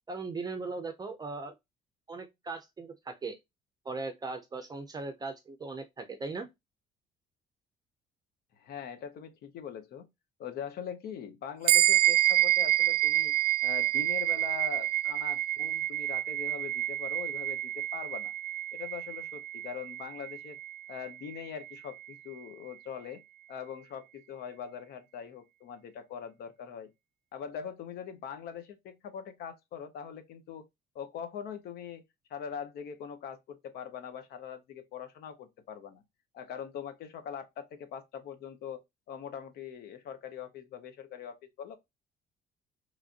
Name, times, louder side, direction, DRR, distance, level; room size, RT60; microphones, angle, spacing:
voice 1, 0.1-1.5 2.1-3.4 3.8-6.5, right 3 dB, 25° right, 0.5 m, -38 dB
voice 2, 8.5-10.1 10.4-13.3 13.6-18.3 18.7-20.6 20.9-23.2 23.5-26.9 27.3-30.6 30.9-32.0 32.3-36.0 36.3-38.8 39.1-41.8, left 8 dB, 70° left, 0.8 m, -42 dB
sound 1, 11.7-21.4, right 13 dB, 80° right, 0.5 m, -28 dB
3.2 x 2.5 x 2.4 m
cardioid pair, 110°, 17 cm